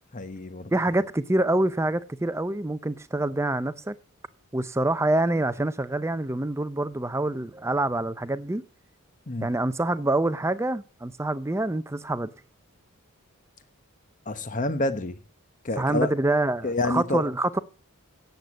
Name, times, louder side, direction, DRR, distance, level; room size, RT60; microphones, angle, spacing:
voice 1, 0.1-0.7 9.3-9.5 14.3-15.2 15.6-16.1 16.6-17.2, left 2 dB, 35° left, 1.0 m, -28 dB
voice 2, 0.7-3.9 4.5-8.6 9.4-12.3 15.8-17.6, right 2 dB, 10° right, 0.5 m, -26 dB
9.1 x 8.0 x 7.4 m
head